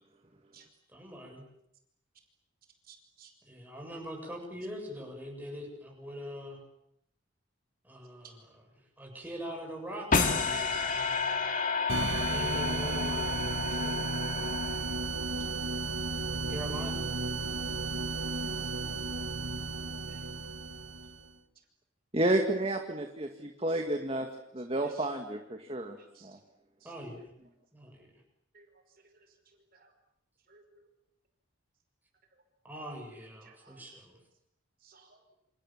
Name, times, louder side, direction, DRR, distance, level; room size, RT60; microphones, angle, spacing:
voice 1, 0.9-1.4 3.5-6.6 7.8-8.6 9.0-11.1 12.3-13.4 13.7-14.8 16.5-17.1 26.8-27.3 27.7-28.1 32.6-34.2, equal, 10° right, 0 dB, 7.7 m, -42 dB
voice 2, 2.9-3.3 20.1-20.2 26.2-26.3 26.8-26.9 28.5-28.7 29.7-29.8 30.5-30.8 33.4-33.8 34.8-35.2, right 6 dB, 45° right, 4 dB, 5.4 m, -58 dB
sound 1, 10.1-15.3, left 4 dB, 40° left, 3.2 m, -31 dB
sound 2, 11.9-21.3, right 3 dB, 60° right, 2.3 m, -34 dB
voice 3, 22.1-24.3 24.5-26.4, right 1 dB, 30° right, 4 dB, 2.1 m, -31 dB
29.0 x 27.5 x 7.5 m, 0.75 s
head